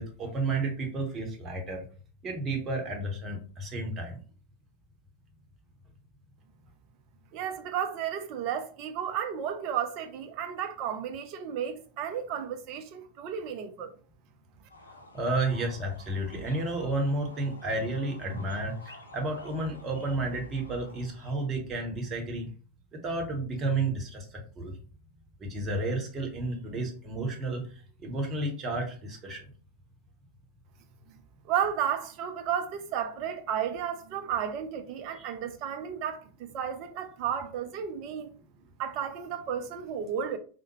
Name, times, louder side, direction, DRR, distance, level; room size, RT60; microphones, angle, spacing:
voice 1, 0.0-1.8 2.2-4.2 15.1-22.5 22.9-24.7 25.4-27.6 28.0-29.4 35.1-35.3, right 2 dB, 25° right, 0.9 m, -32 dB
voice 2, 7.3-13.9 31.5-38.3 38.8-40.4, right 8 dB, 40° right, 0.4 m, -33 dB
sound 1, 14.7-21.5, left 2 dB, 75° left, 0.4 m, -51 dB
3.4 x 2.1 x 3.0 m
figure-of-eight pair, 90°, 0 cm